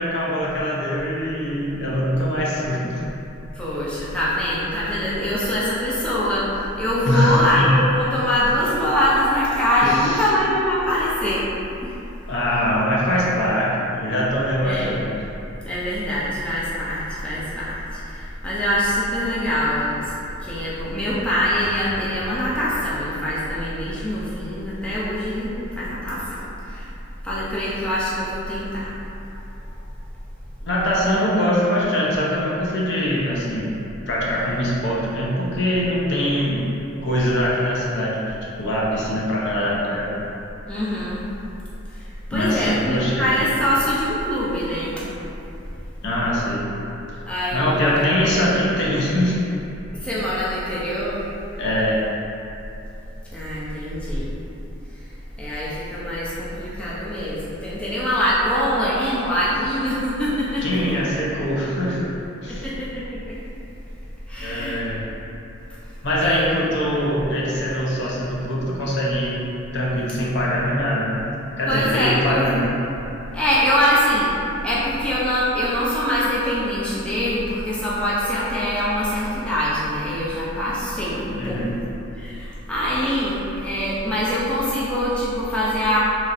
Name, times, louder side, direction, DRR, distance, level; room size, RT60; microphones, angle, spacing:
voice 1, 0.0-3.0 7.0-7.7 9.8-10.3 12.3-15.1 30.6-33.7 34.1-36.6 37.0-40.1 42.3-43.3 46.0-46.6 47.5-49.4 51.6-52.0 60.6-62.0 62.4-62.7 64.4-65.0 66.0-69.4 69.7-71.2 71.6-72.8 81.4-81.8, equal, 60° left, -5 dB, 0.5 m, -22 dB
voice 2, 3.5-6.5 6.8-11.5 11.8-11.9 14.6-15.0 15.7-20.1 20.4-26.9 27.2-28.9 40.7-41.2 41.9-42.0 42.3-45.0 47.3-48.0 49.9-51.2 53.3-54.3 55.4-60.8 62.4-63.3 64.3-64.8 66.2-66.5 71.7-72.5 73.3-74.3 74.6-81.7 82.2-86.0, equal, 5° left, -9 dB, 0.4 m, -23 dB
3.0 x 2.7 x 2.4 m, 2.9 s
head